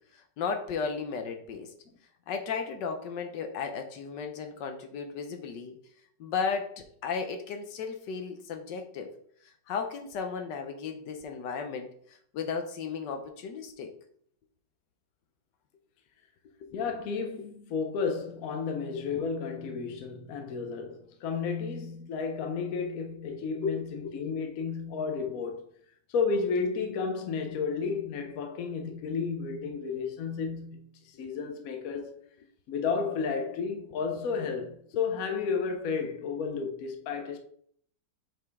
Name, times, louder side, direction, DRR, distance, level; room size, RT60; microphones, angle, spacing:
voice 1, 0.1-1.7 2.3-5.8 6.2-9.1 9.4-13.9 16.6-17.0 18.9-19.3 19.9-20.0 23.5-24.3, left 5 dB, 75° left, 1.3 m, -35 dB
voice 2, 16.7-25.6 26.1-32.1 32.7-37.4, left 5 dB, 60° left, 1.1 m, -32 dB
6.0 x 4.8 x 3.5 m
omnidirectional pair, 1.9 m